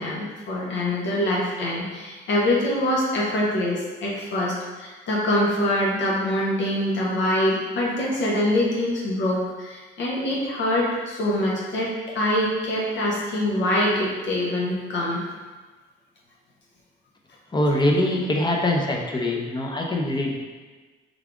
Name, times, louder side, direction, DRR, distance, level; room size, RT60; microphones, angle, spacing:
voice 1, 0.0-15.2, left 1 dB, 65° left, -4 dB, 0.8 m, -24 dB
voice 2, 17.5-20.4, left 1 dB, 20° left, 1 dB, 0.6 m, -23 dB
3.5 x 2.4 x 3.5 m, 1.3 s
cardioid pair, 90°, 20 cm